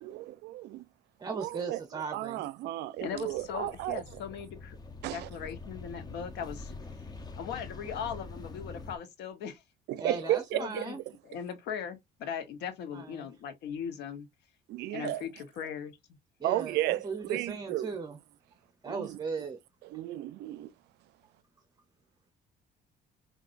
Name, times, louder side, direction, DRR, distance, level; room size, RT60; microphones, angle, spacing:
voice 1, 0.0-0.8 1.3-1.8 2.1-4.0 5.0-5.3 9.9-10.9 14.7-15.2 16.4-17.9 18.9-19.2 19.8-20.7, right 15 dB, 80° right, 0.4 m, -33 dB
voice 2, 1.2-2.5 10.0-11.0 12.9-13.3 16.4-18.2 18.8-19.6, right 4 dB, 25° right, 0.7 m, -37 dB
voice 3, 3.0-4.8 5.1-6.7 7.4-9.6 10.2-11.0 11.2-14.3 14.9-16.0, left 7 dB, 85° left, 1.1 m, -39 dB
sound 1, 3.0-9.0, left 3 dB, 25° left, 0.7 m, -45 dB
5.0 x 2.6 x 2.5 m
cardioid pair, 110°, 17 cm